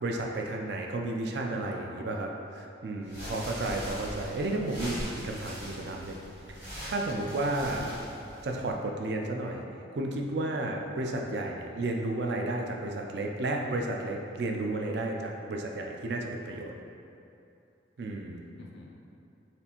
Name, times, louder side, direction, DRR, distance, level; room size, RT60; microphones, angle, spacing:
voice 1, 0.0-6.2 6.5-6.6 6.8-7.9 8.4-9.6 9.9-16.7 18.0-18.5, right 2 dB, 60° right, 1 dB, 0.4 m, -32 dB
voice 2, 1.7-2.2 3.2-3.8 7.1-7.2 7.6-8.1 18.6-19.0, left 3 dB, 55° left, -1 dB, 0.3 m, -47 dB
sound 1, 3.0-8.7, equal, 10° right, 0.8 m, -41 dB
4.2 x 3.3 x 2.9 m, 2.7 s
head